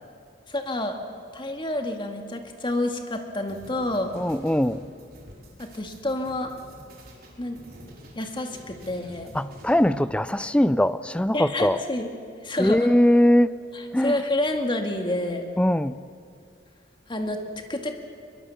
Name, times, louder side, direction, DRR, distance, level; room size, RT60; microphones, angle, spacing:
voice 1, 0.5-1.0 1.3-4.1 5.6-6.5 7.4-7.6 8.2-9.4 11.3-12.1 12.4-12.9 14.0-15.5 17.1-17.4 17.7-18.0, left 1 dB, 25° left, 4 dB, 2.0 m, -28 dB
sound 1, 3.5-10.1, equal, 55° right, 4.4 m, -48 dB
voice 2, 4.2-4.8 9.3-11.8 12.6-13.6 13.9-14.2 15.6-16.0, left 1 dB, 5° left, 15 dB, 0.4 m, -21 dB
22.5 x 22.0 x 7.1 m, 2.3 s
head